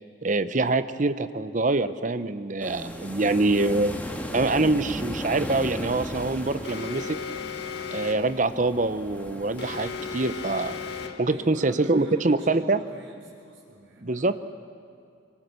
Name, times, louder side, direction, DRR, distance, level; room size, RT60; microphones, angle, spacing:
voice 1, 0.2-7.2 7.9-10.8 11.2-12.8 14.0-14.3, right 2 dB, 40° right, 12 dB, 0.8 m, -25 dB
sound 1, 2.6-11.1, equal, 10° left, 1.8 m, -37 dB
Alarm, 6.6-8.4 9.6-11.4, left 6 dB, 60° left, 1.5 m, -35 dB
voice 2, 11.2-14.3, right 1 dB, 75° right, -5 dB, 4.0 m, -46 dB
25.5 x 24.5 x 6.9 m, 2.4 s
head